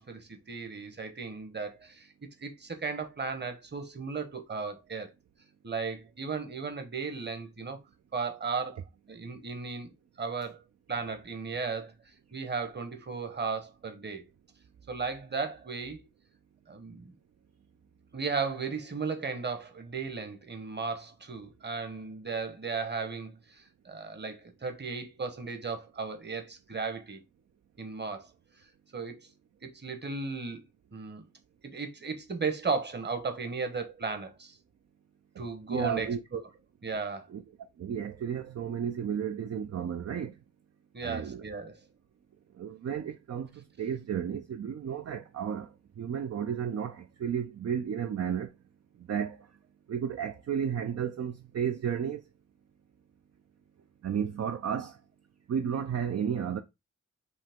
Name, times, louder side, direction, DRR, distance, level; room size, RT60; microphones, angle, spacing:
voice 1, 0.0-2.1 2.4-5.1 5.6-7.8 8.1-8.8 9.1-10.6 10.9-14.2 14.9-16.0 16.7-17.1 18.1-27.2 27.8-28.3 28.6-28.7 28.9-29.2 29.6-30.6 30.9-31.2 31.6-34.6 35.4-36.1 36.8-37.3 40.9-41.8, right 4 dB, 35° right, 1.0 m, -35 dB
voice 2, 35.7-36.2 37.3-37.4 37.8-40.3 41.0-41.4 42.6-45.7 46.0-48.5 49.0-49.5 49.9-52.2 54.0-55.0 55.5-56.6, right 8 dB, 60° right, 0.5 m, -33 dB
5.3 x 2.9 x 3.5 m
wide cardioid pair, 110°, 29 cm